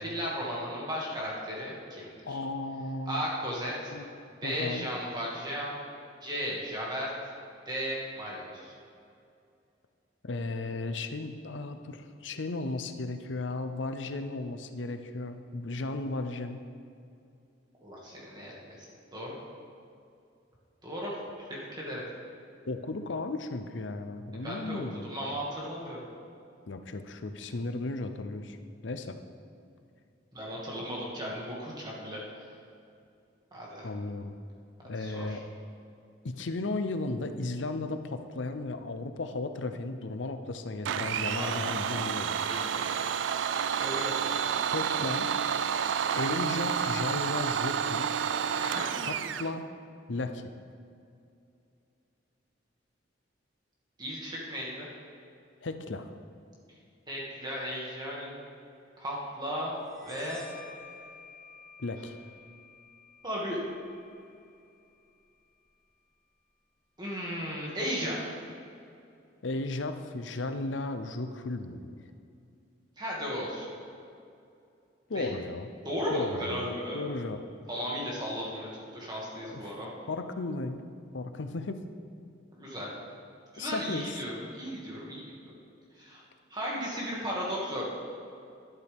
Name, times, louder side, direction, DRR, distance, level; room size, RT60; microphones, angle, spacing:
voice 1, 0.0-2.4 3.1-3.9 4.4-5.8 6.2-7.1 7.7-8.7 17.8-18.9 19.1-19.3 20.8-21.2 21.5-22.0 24.4-26.0 30.3-32.2 33.5-33.9 35.0-35.4 41.3-42.0 42.4-43.1 43.7-44.4 48.5-48.9 54.0-54.9 57.1-58.4 59.0-60.5 63.2-63.6 67.0-68.2 73.0-73.7 75.1-75.3 75.8-77.0 77.7-78.7 78.9-79.9 82.5-82.9 83.5-85.3 86.0-86.2 86.5-87.8, equal, 20° right, -5 dB, 2.2 m, -35 dB
voice 2, 2.2-3.3 3.9-4.1 4.4-4.9 10.2-16.6 22.7-25.1 26.7-28.6 28.8-29.2 33.8-34.4 34.8-35.4 36.2-42.5 44.7-45.3 46.1-48.1 49.0-49.7 50.1-50.5 55.6-56.1 61.8-62.1 69.4-72.0 75.1-75.7 76.1-76.7 76.9-77.4 79.4-79.6 80.1-80.9 81.1-81.8 83.6-84.2, left 2 dB, 80° left, 8 dB, 0.7 m, -35 dB
Domestic sounds home sounds, 40.8-49.5, right 7 dB, 80° right, 0.4 m, -30 dB
sound 1, 59.9-67.2, left 4 dB, ahead, 0.9 m, -54 dB
12.5 x 11.0 x 3.6 m, 2.5 s
head